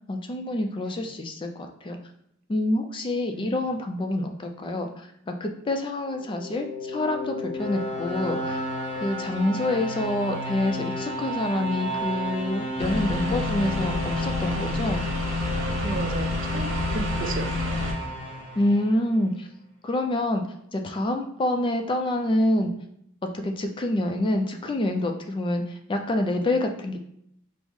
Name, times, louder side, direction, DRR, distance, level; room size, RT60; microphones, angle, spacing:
voice 1, 0.1-2.0 2.5-8.6 8.9-15.0 18.6-19.5 19.8-20.4 20.7-22.7 23.2-27.0, left 1 dB, 25° left, 4 dB, 0.3 m, -27 dB
voice 2, 3.3-3.6 9.2-9.6 15.8-17.9, right 3 dB, 45° right, 6 dB, 0.4 m, -35 dB
sound 1, 6.1-19.1, equal, 10° right, 1.1 m, -33 dB
sound 2, 12.8-17.9, left 2 dB, 85° right, 0.9 m, -28 dB
4.7 x 2.0 x 3.5 m, 0.73 s
head